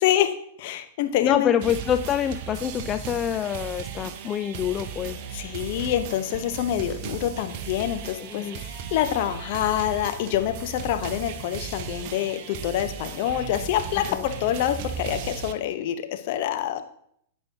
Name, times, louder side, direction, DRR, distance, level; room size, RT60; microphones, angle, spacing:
voice 1, 0.0-1.5 5.3-16.8, left 11 dB, 50° left, 8 dB, 0.8 m, -26 dB
voice 2, 1.2-5.2 6.9-7.0 8.2-8.6 14.0-14.2, left 9 dB, 30° left, 9 dB, 0.3 m, -26 dB
sound 1, 1.6-15.5, right 7 dB, 50° right, 0.7 m, -36 dB
14.5 x 5.5 x 2.8 m, 0.69 s
figure-of-eight pair, 100°, 0 cm